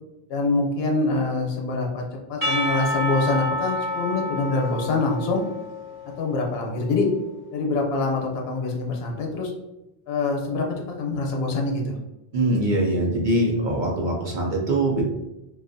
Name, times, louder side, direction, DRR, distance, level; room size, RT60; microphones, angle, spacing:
voice 1, 0.3-2.0 2.3-5.4 6.2-7.1 7.5-9.5 10.1-12.0, left 3 dB, 70° left, 0 dB, 0.8 m, -25 dB
Percussion / Church bell, 2.4-6.6, left 1 dB, 25° left, 0.4 m, -29 dB
voice 2, 12.3-15.0, right 1 dB, 55° right, -2 dB, 0.6 m, -23 dB
2.4 x 2.3 x 2.5 m, 0.93 s
omnidirectional pair, 1.1 m